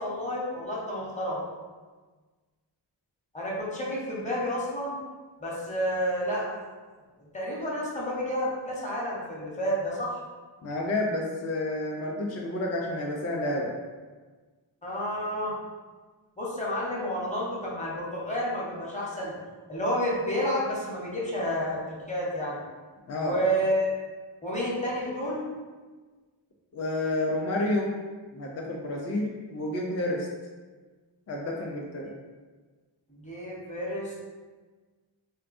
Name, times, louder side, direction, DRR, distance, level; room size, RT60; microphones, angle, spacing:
voice 1, 0.0-1.4 3.3-4.9 5.4-6.6 7.3-10.2 14.8-15.6 16.4-19.4 19.7-22.6 23.2-24.0 24.4-25.4 33.1-34.1, equal, 15° left, -5 dB, 0.8 m, -30 dB
voice 2, 10.6-13.7 23.1-23.4 26.7-27.9 28.3-30.3 31.3-32.1, left 1 dB, 35° left, -1 dB, 0.4 m, -30 dB
3.4 x 2.2 x 2.5 m, 1.4 s
wide cardioid pair, 70°, 47 cm